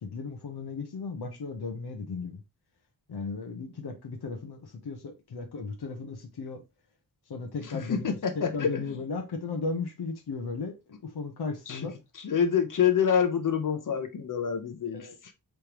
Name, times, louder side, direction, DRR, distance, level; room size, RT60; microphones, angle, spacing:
voice 1, 0.0-2.4 3.1-6.6 7.3-11.9 14.9-15.1, left 4 dB, 85° left, 1.1 m, -36 dB
voice 2, 7.6-9.0 11.7-11.9 12.1-15.3, left 7 dB, 55° left, 0.9 m, -27 dB
5.0 x 3.3 x 3.0 m
wide cardioid pair, 155°, 38 cm